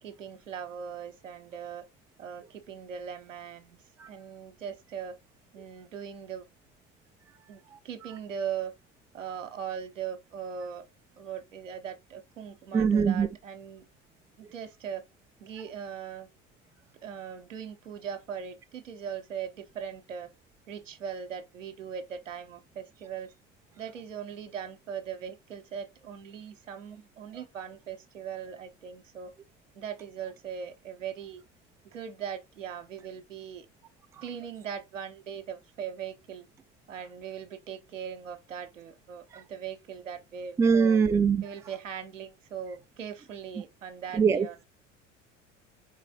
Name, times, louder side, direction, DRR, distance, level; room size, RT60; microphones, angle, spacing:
voice 1, 0.0-1.8 2.2-5.2 5.5-6.5 7.5-8.7 9.1-10.8 11.2-13.9 14.4-15.0 15.4-16.3 17.0-20.3 20.7-23.3 23.8-29.3 29.7-31.4 31.8-33.7 34.2-36.5 36.9-41.0 41.4-44.6, right 8 dB, 80° right, 0.9 m, -40 dB
voice 2, 12.7-13.3 40.6-41.4 44.1-44.6, right 6 dB, 10° right, 0.3 m, -23 dB
4.2 x 4.0 x 2.3 m
figure-of-eight pair, 65°, 38 cm